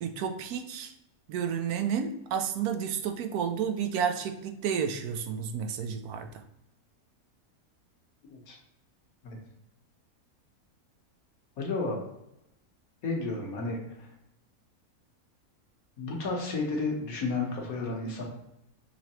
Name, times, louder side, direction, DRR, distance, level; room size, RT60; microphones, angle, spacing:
voice 1, 0.0-0.9 1.3-6.3, right 7 dB, 85° right, 7 dB, 1.1 m, -31 dB
voice 2, 11.6-12.0 13.0-14.1 16.0-18.2, left 3 dB, 70° left, 0 dB, 1.5 m, -32 dB
5.7 x 3.1 x 2.9 m, 0.83 s
omnidirectional pair, 1.6 m